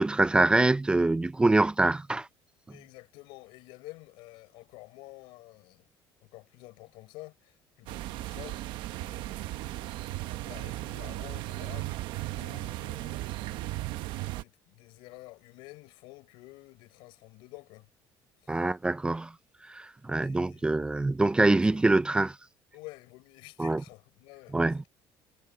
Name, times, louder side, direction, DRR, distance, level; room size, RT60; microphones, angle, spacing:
voice 1, 0.0-2.3 18.5-19.3 19.7-22.4 23.6-23.8 24.5-24.8, right 2 dB, 10° right, 0.5 m, -24 dB
voice 2, 2.7-5.9 6.2-14.0 14.4-17.9 18.4-18.7 20.2-21.1 21.5-21.8 22.7-24.6, left 22 dB, 80° left, 5.5 m, -50 dB
sound 1, 7.9-14.4, right 17 dB, 75° right, 1.0 m, -36 dB
cardioid pair, 115°, 8 cm